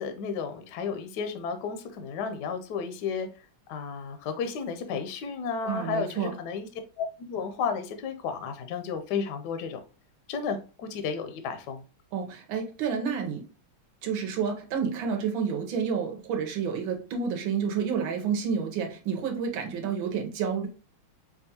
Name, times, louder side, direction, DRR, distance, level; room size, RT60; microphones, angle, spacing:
voice 1, 0.0-6.7 7.0-9.8 10.3-11.8, left 6 dB, 75° left, 7 dB, 1.0 m, -33 dB
voice 2, 5.6-6.3 12.1-13.4 14.0-20.7, right 6 dB, 70° right, 3 dB, 1.5 m, -29 dB
5.2 x 2.3 x 2.8 m, 0.34 s
omnidirectional pair, 2.4 m